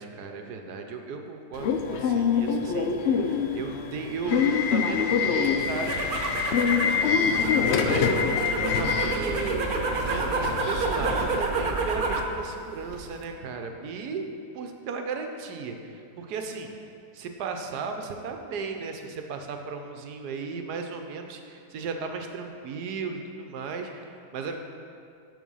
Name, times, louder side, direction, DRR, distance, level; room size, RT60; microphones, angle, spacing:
voice 1, 0.0-14.2 14.5-16.7 17.1-24.6, right 5 dB, 75° right, 5 dB, 1.3 m, -36 dB
Subway metro underground / Alarm, 1.6-11.4, left 6 dB, 70° left, 0.6 m, -25 dB
sound 1, 5.1-5.9 7.0-7.7 8.8-9.4 10.6-11.1 12.3-12.4 12.9-13.1, left 2 dB, 40° left, 1.3 m, -44 dB
sound 2, 5.6-12.3 12.7-13.2, right 3 dB, 45° right, 0.7 m, -29 dB
11.0 x 4.3 x 5.5 m, 2.4 s
omnidirectional pair, 1.8 m